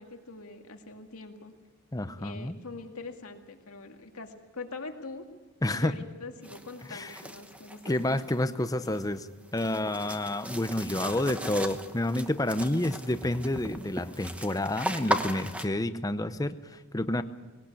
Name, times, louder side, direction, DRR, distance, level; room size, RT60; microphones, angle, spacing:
voice 1, 0.0-1.5 2.2-5.3 5.7-7.9, left 3 dB, 85° left, 5 dB, 2.1 m, -43 dB
voice 2, 1.9-2.5 5.6-5.9 6.9-7.1 7.9-9.3 9.5-17.2, left 1 dB, 15° left, 11 dB, 0.7 m, -29 dB
sound 1, 6.4-15.7, right 1 dB, 5° right, 1.0 m, -37 dB
20.5 x 18.0 x 8.5 m, 1.2 s
head